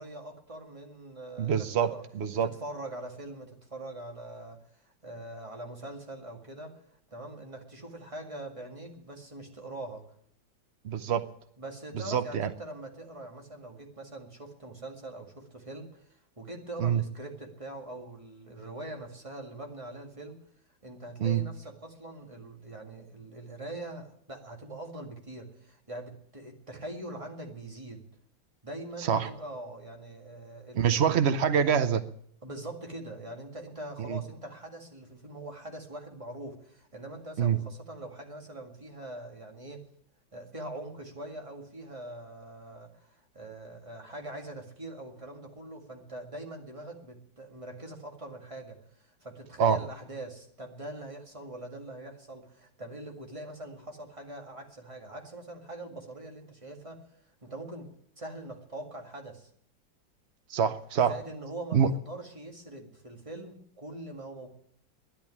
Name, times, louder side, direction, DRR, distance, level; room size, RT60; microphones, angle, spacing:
voice 1, 0.0-2.0 2.4-6.8 7.1-10.0 11.6-20.4 20.8-28.0 28.6-31.2 32.4-39.8 40.3-57.0 57.4-59.5 61.0-64.5, right 1 dB, 15° right, 1 dB, 2.1 m, -43 dB
voice 2, 1.4-1.9 2.1-2.5 10.8-11.2 12.1-12.5 16.8-17.0 21.2-21.4 29.0-29.3 30.7-32.0 34.0-34.2 37.4-37.6 49.6-49.8 60.5-61.1 61.7-61.9, right 8 dB, 85° right, 11 dB, 0.5 m, -25 dB
11.5 x 10.5 x 9.8 m, 0.66 s
omnidirectional pair, 2.1 m